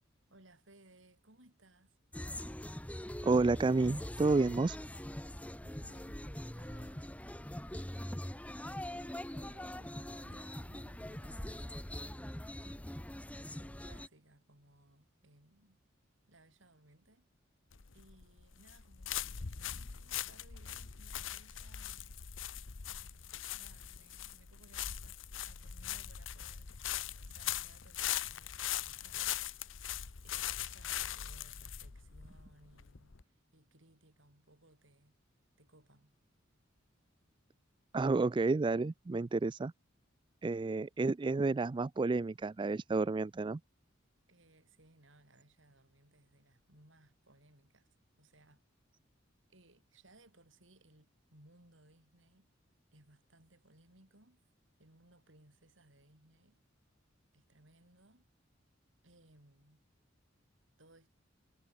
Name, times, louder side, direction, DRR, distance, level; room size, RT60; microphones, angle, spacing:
voice 1, 0.3-2.0 5.6-7.4 7.9-12.0 12.4-12.9 13.3-15.8 16.3-17.3 17.9-22.2 22.8-29.7 30.2-35.2 35.6-36.2 44.3-47.9 48.2-48.6 49.5-52.5 52.9-54.4 54.8-56.6 57.3-58.3 59.0-59.8 60.8-61.1, right 1 dB, 75° right, 7.4 m, -64 dB
sound 1, 2.1-14.1, left 1 dB, 5° left, 1.1 m, -43 dB
voice 2, 3.2-4.8 37.9-39.7 40.4-43.6, right 3 dB, 25° right, 0.3 m, -30 dB
sound 2, 17.7-33.2, left 11 dB, 80° left, 1.0 m, -41 dB
head